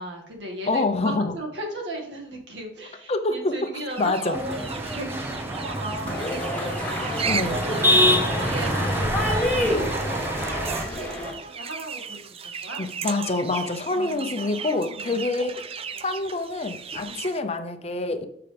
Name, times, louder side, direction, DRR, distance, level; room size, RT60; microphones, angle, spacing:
voice 1, 0.0-11.1 11.4-12.8 13.9-15.2 17.0-17.3, right 1 dB, 80° right, 0 dB, 2.1 m, -37 dB
voice 2, 0.7-1.3 3.1-3.5 4.0-4.4 7.3-7.6 12.8-15.6 16.0-18.2, left 2 dB, 35° left, 8 dB, 0.7 m, -26 dB
sound 1, 3.9-17.4, right 6 dB, 35° right, 0.5 m, -36 dB
sound 2, 4.3-10.8, equal, 15° right, 0.9 m, -26 dB
sound 3, 6.1-11.3, left 1 dB, 10° left, 2.4 m, -29 dB
13.0 x 5.8 x 3.4 m, 0.76 s
head